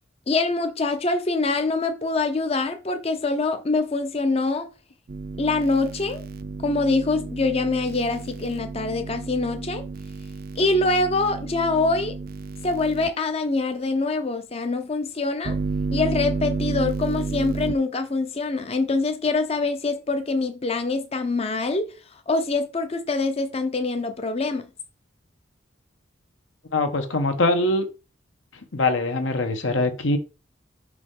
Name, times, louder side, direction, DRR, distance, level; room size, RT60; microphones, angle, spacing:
voice 1, 0.3-4.7 5.4-6.3 6.6-9.8 10.6-12.2 12.6-15.6 15.9-21.9 22.3-24.7, left 3 dB, 30° left, 0.5 m, -24 dB
sound 1, 5.1-13.1 15.4-17.7, right 4 dB, 50° right, 0.4 m, -31 dB
voice 2, 26.7-27.9 28.7-30.2, left 2 dB, 80° left, 1.0 m, -22 dB
5.4 x 4.7 x 3.7 m
head